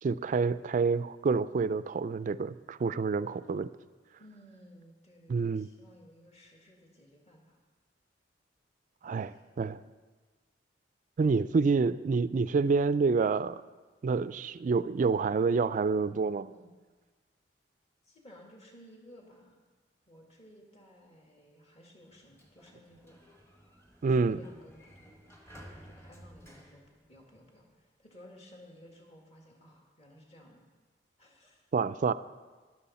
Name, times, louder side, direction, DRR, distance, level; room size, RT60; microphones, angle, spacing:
voice 1, 0.0-3.7 5.3-5.7 9.0-9.8 11.2-13.6 14.0-16.5 24.0-24.4 31.7-32.1, right 4 dB, 45° right, 15 dB, 0.3 m, -28 dB
voice 2, 4.2-7.6 9.0-9.4 16.5-16.7 18.0-19.6 20.1-23.2 24.1-25.2 25.8-30.7 31.2-31.7, equal, 35° left, 0 dB, 2.0 m, -56 dB
Sliding door, 22.1-27.7, equal, 15° left, 1.4 m, -55 dB
12.5 x 11.0 x 4.2 m, 1.3 s
head